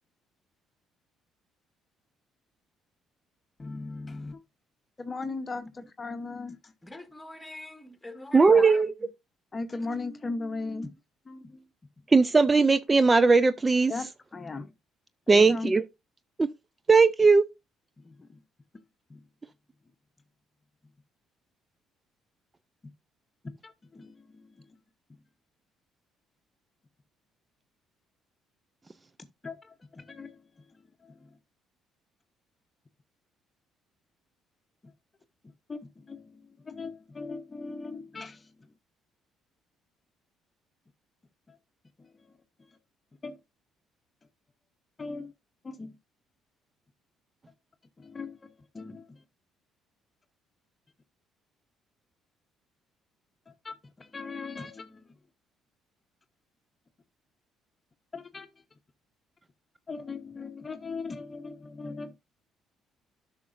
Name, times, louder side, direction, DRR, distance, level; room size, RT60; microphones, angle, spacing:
voice 1, 3.6-4.4 5.0-6.7 8.5-8.6 9.5-11.0 11.3-11.7 13.9-14.1 14.3-14.7 15.3-15.7 18.0-18.4 19.1-19.2 22.8-22.9 23.4-24.8 29.4-31.4 34.8-34.9 35.4-38.7 41.5-41.6 42.0-42.8 43.2-43.4 45.0-45.3 45.6-46.0 48.0-49.2 53.5-55.1 58.1-58.5 59.9-62.2, left 3 dB, 30° left, 0.9 m, -39 dB
voice 2, 6.8-8.8 9.8-9.9, left 2 dB, 10° left, 1.7 m, -41 dB
voice 3, 8.3-8.9 12.1-13.9 15.3-15.8 16.4-16.5 16.9-17.4, right 4 dB, 25° right, 0.4 m, -19 dB
13.0 x 5.8 x 2.6 m
hypercardioid pair, 50°, 0 cm